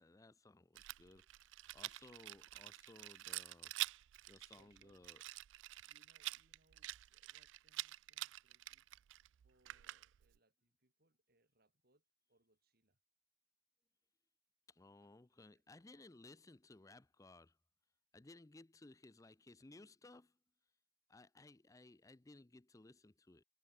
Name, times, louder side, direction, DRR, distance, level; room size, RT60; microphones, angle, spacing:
voice 1, 0.0-3.7 4.3-5.2 14.7-17.6 18.1-20.4 21.1-23.4, left 2 dB, 20° left, 0.5 m, -60 dB
Rattle, 0.8-10.4, right 17 dB, 75° right, 0.3 m, -47 dB
voice 2, 4.6-5.0 5.8-8.9 9.4-13.0 15.0-15.6, right 1 dB, 55° right, 6.9 m, -77 dB
head